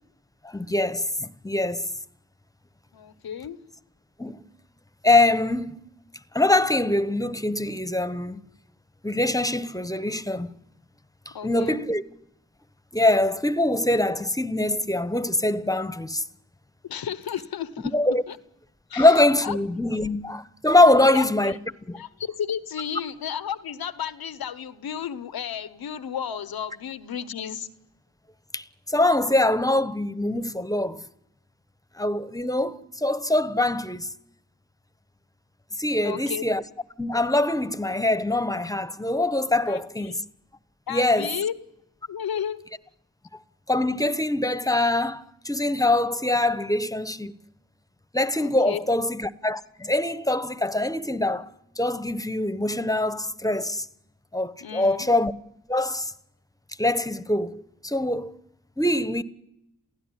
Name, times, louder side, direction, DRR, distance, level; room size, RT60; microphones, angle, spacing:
voice 1, 0.4-1.9 4.2-4.4 5.0-5.8 6.3-8.4 9.0-10.5 11.2-12.0 12.9-16.2 17.9-18.2 18.9-21.5 21.8-22.0 28.5-31.0 32.0-34.1 35.7-36.6 37.0-40.2 40.9-41.4 43.7-47.4 48.1-51.5 51.8-53.9 54.3-55.3 55.7-56.1 56.8-58.4 58.8-59.2, left 2 dB, 10° left, 1.2 m, -23 dB
voice 2, 2.9-3.6 11.3-11.9 16.8-17.9 18.3-18.4 18.9-19.6 21.1-21.6 22.0-27.7 36.0-36.4 39.7-40.2 40.9-41.5 42.1-42.6 48.3-48.8 54.6-55.1, left 8 dB, 90° left, 1.1 m, -33 dB
28.5 x 16.0 x 10.0 m
cardioid pair, 45°, 35 cm